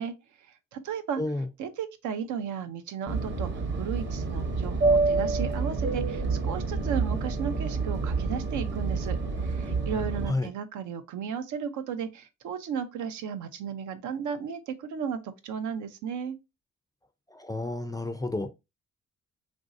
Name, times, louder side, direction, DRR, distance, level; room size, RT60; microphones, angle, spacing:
voice 1, 0.0-1.2 1.6-16.4, right 7 dB, 75° right, 0.6 m, -35 dB
voice 2, 1.2-1.5 10.3-10.5 17.3-18.5, left 2 dB, 15° left, 0.3 m, -30 dB
Fixed-wing aircraft airplane, 3.1-10.3, right 3 dB, 35° right, 0.9 m, -28 dB
3.1 x 2.6 x 2.5 m
cardioid pair, 90°, 30 cm